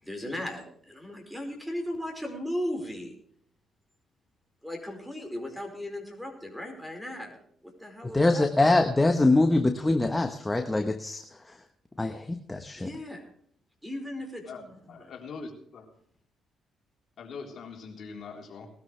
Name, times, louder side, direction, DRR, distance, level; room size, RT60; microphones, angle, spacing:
voice 1, 0.0-3.2 4.6-7.4 7.8-8.5 12.8-13.2 13.8-15.1, left 1 dB, ahead, 4 dB, 4.8 m, -36 dB
voice 2, 8.1-11.3 12.0-12.9, left 2 dB, 15° left, 6 dB, 1.1 m, -24 dB
voice 3, 14.4-15.9 17.2-18.7, left 4 dB, 60° left, 1 dB, 3.7 m, -42 dB
20.0 x 12.5 x 3.3 m, 0.64 s
cardioid pair, 90°, 0 cm